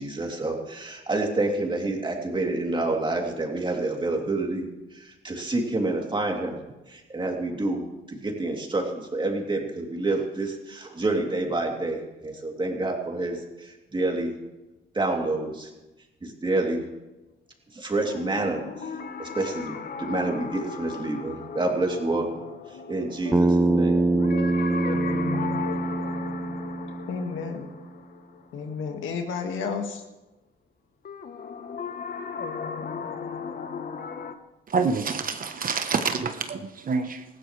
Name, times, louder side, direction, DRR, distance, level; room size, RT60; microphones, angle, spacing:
voice 1, 0.0-6.6 6.9-7.8 8.1-14.3 14.9-15.7 16.2-16.8 17.7-18.6 19.2-22.3 22.9-24.0, right 2 dB, 25° right, 0 dB, 3.1 m, -28 dB
sound 1, 18.1-28.9 31.0-34.3, left 6 dB, 45° left, 1.1 m, -36 dB
Bass guitar, 23.3-27.6, right 2 dB, 10° right, 0.4 m, -24 dB
voice 2, 27.1-27.7 28.5-30.0, left 5 dB, 80° left, 4 dB, 2.0 m, -31 dB
voice 3, 34.7-37.2, right 5 dB, 45° right, 7 dB, 1.1 m, -27 dB
19.0 x 15.5 x 3.3 m, 1.0 s
cardioid pair, 90°, 20 cm